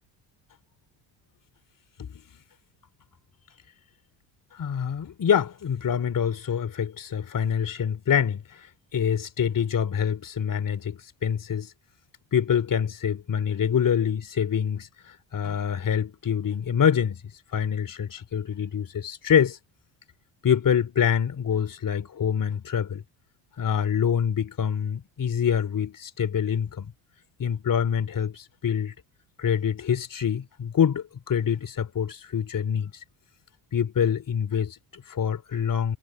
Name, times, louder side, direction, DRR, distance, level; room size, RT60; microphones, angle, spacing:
voice 1, 4.6-8.4 8.9-11.7 12.3-14.9 15.3-17.2 17.5-19.6 20.4-23.0 23.6-26.9 27.4-28.9 29.4-32.9 33.7-36.0, left 8 dB, 40° left, 3.3 m, -25 dB
supercardioid pair, 75°, 47 cm